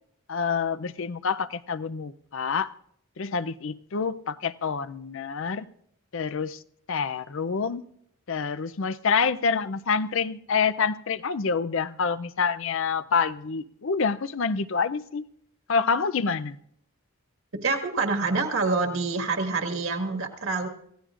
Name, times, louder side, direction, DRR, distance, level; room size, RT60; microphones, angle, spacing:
voice 1, 0.3-2.7 3.2-5.7 6.1-6.6 6.9-7.8 8.3-15.2 15.7-16.6, left 5 dB, 60° left, 0.5 m, -27 dB
voice 2, 17.6-20.7, right 3 dB, 65° right, 1.8 m, -26 dB
27.0 x 15.5 x 2.5 m
head